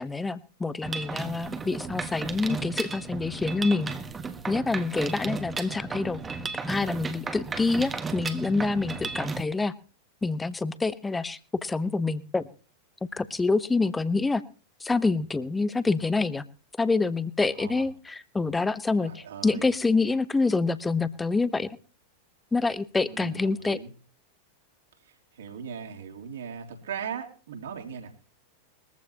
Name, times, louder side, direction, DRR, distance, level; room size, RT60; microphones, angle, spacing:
voice 1, 0.0-3.9 4.5-6.2 6.6-9.7 10.2-12.4 13.1-14.4 14.8-16.4 16.8-21.7 22.5-23.8, left 3 dB, 10° left, 16 dB, 0.9 m, -26 dB
Mechanisms, 0.8-9.4, right 4 dB, 15° right, 1.4 m, -34 dB
voice 2, 19.0-19.7 23.1-23.9 25.0-28.1, right 7 dB, 60° right, 1 dB, 3.2 m, -39 dB
21.5 x 14.5 x 2.9 m, 0.38 s
figure-of-eight pair, 90°, 0 cm